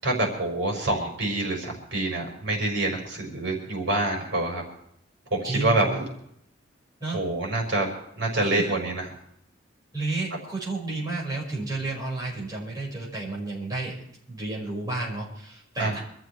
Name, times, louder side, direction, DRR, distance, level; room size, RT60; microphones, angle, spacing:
voice 1, 0.0-4.6 5.3-6.0 7.1-7.9 8.2-9.1 15.8-16.0, right 2 dB, 65° right, 0 dB, 5.0 m, -26 dB
voice 2, 5.4-6.0 7.0-7.2 8.4-8.7 9.9-14.0 14.3-16.0, right 2 dB, 20° right, -4 dB, 5.5 m, -31 dB
26.0 x 13.5 x 3.3 m, 0.72 s
head